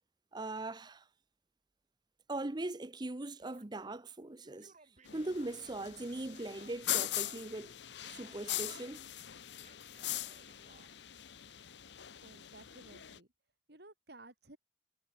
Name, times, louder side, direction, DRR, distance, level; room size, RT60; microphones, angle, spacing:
voice 1, 0.3-1.0 2.3-4.7 5.1-7.7 8.2-9.0, right 2 dB, 25° right, 0.7 m, -40 dB
Male speech man speaking / Yell, 3.4-4.0 4.4-7.7 8.0-9.0 9.6-10.9, right 3 dB, 40° right, 6.4 m, -63 dB
sound 1, 5.0-13.2, left 13 dB, 70° left, 0.9 m, -41 dB
voice 2, 12.2-13.3 13.7-14.6, right 2 dB, 60° right, 4.0 m, -55 dB
head